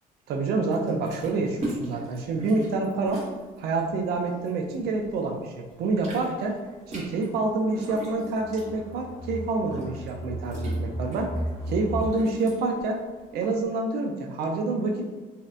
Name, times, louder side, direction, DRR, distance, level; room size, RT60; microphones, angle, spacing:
voice 1, 0.3-3.2 3.6-6.6 6.9-11.3 11.7-13.0 13.3-15.1, right 3 dB, 70° right, 1 dB, 0.5 m, -27 dB
sound 1, 0.7-5.2 5.6-13.6, right 1 dB, 40° right, 1.0 m, -40 dB
sound 2, 3.9-4.0 4.4-4.5 5.0-5.1 5.9-12.1, right 1 dB, 30° left, 0.7 m, -36 dB
2.8 x 2.0 x 2.4 m, 1.2 s
cardioid pair, 110°, 17 cm